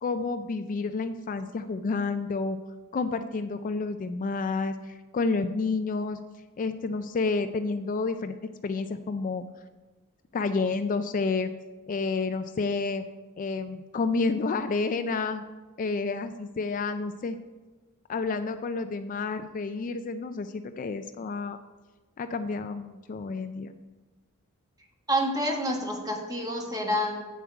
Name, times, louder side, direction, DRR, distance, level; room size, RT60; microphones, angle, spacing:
voice 1, 0.0-2.6 2.9-6.2 6.6-8.4 8.6-9.4 10.3-11.5 11.9-13.0 13.4-15.4 15.8-17.4 18.1-21.6 22.2-23.7, left 4 dB, 40° left, 9 dB, 0.3 m, -30 dB
voice 2, 25.1-27.2, equal, 20° right, 1 dB, 1.3 m, -28 dB
8.4 x 7.1 x 4.7 m, 1.3 s
head